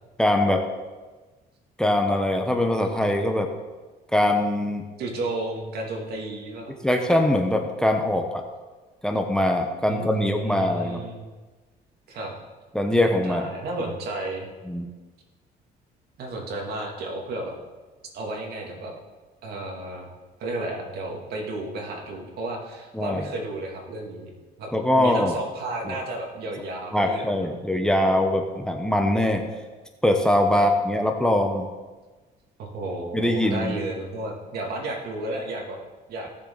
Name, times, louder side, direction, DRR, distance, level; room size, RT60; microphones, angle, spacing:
voice 1, 0.2-0.6 1.8-3.5 4.1-4.8 6.8-8.4 9.0-11.0 12.7-13.5 14.7-14.9 22.9-23.2 24.7-25.3 25.9-26.0 26.9-29.5 30.0-31.7 33.1-33.8, left 1 dB, 5° left, 3 dB, 1.1 m, -22 dB
voice 2, 5.0-6.7 9.9-11.2 12.1-12.3 13.2-14.5 16.2-17.6 18.1-18.9 19.4-20.1 20.4-24.3 24.6-24.7 25.0-27.5 30.5-30.7 32.6-35.8 36.1-36.3, right 2 dB, 70° right, 0 dB, 2.8 m, -32 dB
17.5 x 7.1 x 4.1 m, 1.3 s
cardioid pair, 110°, 17 cm